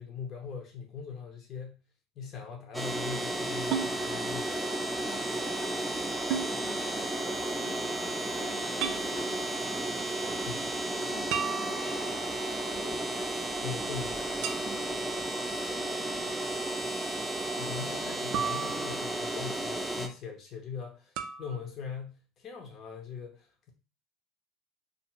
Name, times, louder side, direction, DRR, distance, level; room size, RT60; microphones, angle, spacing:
voice 1, 0.0-1.8 2.2-4.6 10.5-10.6 13.6-14.2 17.6-23.7, left 6 dB, 45° left, 1 dB, 0.6 m, -41 dB
sound 1, 2.7-20.1, right 1 dB, 5° right, 0.6 m, -33 dB
sound 2, 3.7-3.9 6.3-6.5 8.8-9.1 11.3-12.2 14.4-15.0 18.3-19.3 21.2-21.5, right 9 dB, 65° right, 0.3 m, -34 dB
voice 2, 5.0-5.8 6.4-10.6 10.9-13.9 14.6-15.0 15.4-15.9, left 1 dB, 85° left, 0 dB, 0.9 m, -49 dB
2.4 x 2.4 x 3.0 m, 0.34 s
hypercardioid pair, 75°, 0 cm